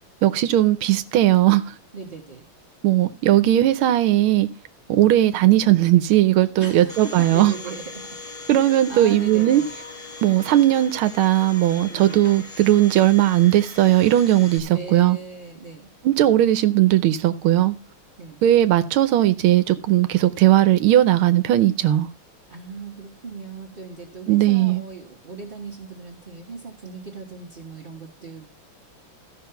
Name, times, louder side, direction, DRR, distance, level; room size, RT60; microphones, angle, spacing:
voice 1, 0.2-1.6 2.8-4.5 4.9-7.5 8.5-9.6 10.2-15.2 16.0-17.7 18.4-22.1 24.3-24.8, right 13 dB, 80° right, 1.5 m, -18 dB
voice 2, 1.9-2.4 6.4-8.2 8.7-9.7 11.9-12.3 14.7-15.9 18.2-18.4 22.5-28.5, right 4 dB, 30° right, 1.2 m, -37 dB
Domestic sounds home sounds, 6.9-14.6, left 3 dB, 20° left, 1.2 m, -40 dB
14.0 x 5.9 x 5.7 m
omnidirectional pair, 2.3 m